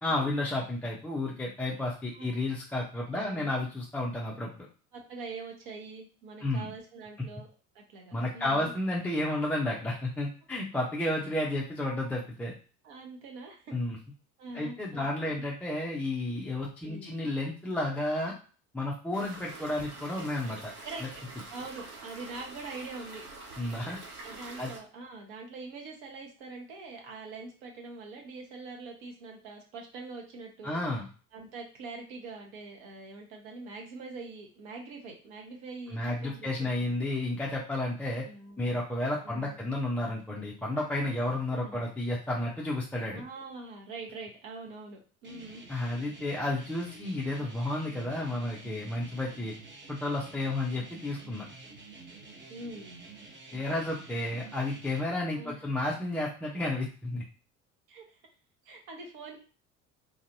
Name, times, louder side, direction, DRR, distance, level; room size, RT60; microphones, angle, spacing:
voice 1, 0.0-4.7 6.4-6.7 8.1-12.5 13.7-14.0 14.5-18.3 18.7-20.7 23.6-24.0 24.6-24.7 30.6-31.0 35.9-38.3 38.6-43.2 45.7-49.6 49.9-51.4 53.5-57.2, left 1 dB, 5° left, -3 dB, 0.4 m, -32 dB
voice 2, 2.1-2.4 3.1-3.5 4.9-7.5 7.7-8.7 12.8-13.7 14.4-15.4 16.8-17.1 20.8-21.2 21.5-23.2 24.2-30.8 31.3-36.9 38.2-38.7 39.2-39.6 41.5-41.8 43.1-45.6 52.5-53.0 55.4-55.6 57.9-58.0 58.6-59.4, right 3 dB, 55° right, 1 dB, 1.2 m, -44 dB
sound 1, 19.1-24.8, right 3 dB, 80° right, 0.9 m, -46 dB
sound 2, 45.2-55.0, right 3 dB, 25° right, 0.9 m, -49 dB
3.3 x 2.6 x 2.6 m, 0.39 s
figure-of-eight pair, 65°, 43 cm